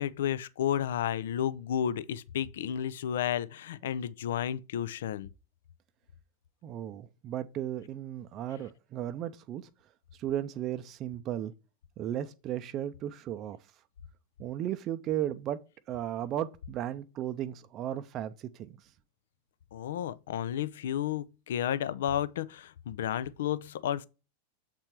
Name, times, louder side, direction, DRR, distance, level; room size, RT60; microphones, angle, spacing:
voice 1, 0.0-5.3 19.7-24.1, left 10 dB, 60° left, 0.4 m, -32 dB
voice 2, 6.6-9.7 10.2-11.5 12.0-13.6 14.4-15.6 15.9-18.8, right 11 dB, 35° right, 0.5 m, -35 dB
7.6 x 4.4 x 4.3 m
figure-of-eight pair, 90°, 0 cm